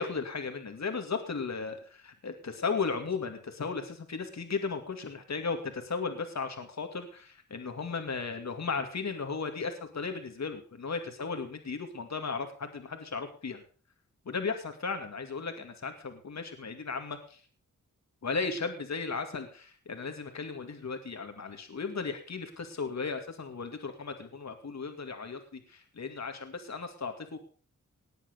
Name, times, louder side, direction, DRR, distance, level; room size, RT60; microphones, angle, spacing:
voice 1, 0.0-13.6 14.3-17.4 18.2-27.4, left 4 dB, 55° left, 6 dB, 2.3 m, -35 dB
19.0 x 8.2 x 6.5 m, 0.41 s
wide cardioid pair, 80°, 32 cm